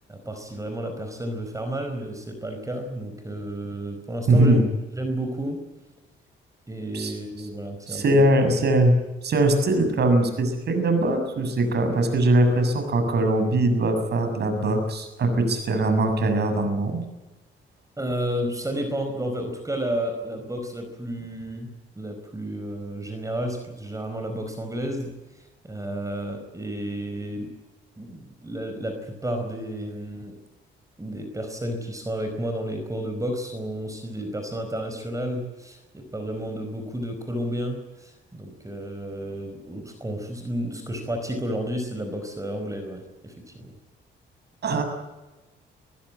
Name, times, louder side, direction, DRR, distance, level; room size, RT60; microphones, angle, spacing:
voice 1, 0.1-4.6 5.0-5.6 6.7-8.3 18.0-21.7 21.9-27.5 28.0-30.4 31.0-43.7, right 1 dB, 15° right, 5 dB, 4.7 m, -31 dB
voice 2, 4.3-4.6 6.9-7.1 7.9-17.0 44.6-44.8, right 1 dB, 55° right, 7 dB, 6.9 m, -21 dB
25.5 x 15.5 x 8.9 m, 1.1 s
cardioid pair, 90°, 20 cm